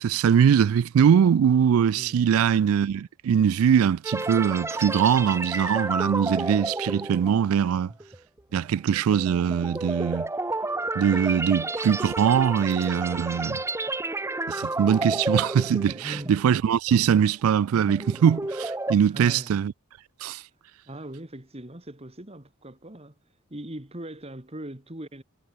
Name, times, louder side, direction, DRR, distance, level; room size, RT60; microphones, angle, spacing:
voice 1, 0.0-7.9 8.5-10.3 11.0-13.6 14.5-19.7 20.2-20.4, right 8 dB, 80° right, 0.3 m, -22 dB
voice 2, 2.0-2.3 15.8-16.3 18.9-19.5 20.9-23.2 23.5-25.2, right 1 dB, 30° right, 2.3 m, -40 dB
sound 1, 4.0-16.6 16.9-17.1 17.6-19.0, right 2 dB, 15° right, 0.9 m, -31 dB
head